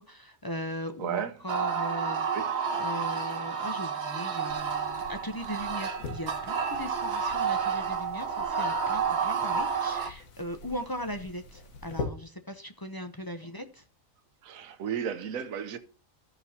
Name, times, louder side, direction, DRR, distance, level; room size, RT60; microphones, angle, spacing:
voice 1, 0.0-2.3 2.8-13.8, equal, 25° left, 0.5 m, -39 dB
voice 2, 1.0-1.4 2.3-2.5 14.4-15.8, right 8 dB, 85° right, 1.2 m, -33 dB
sound 1, 1.5-10.1, right 6 dB, 55° right, 1.2 m, -30 dB
sound 2, 4.5-12.1, left 3 dB, 90° left, 1.7 m, -44 dB
15.0 x 6.0 x 2.8 m
omnidirectional pair, 1.4 m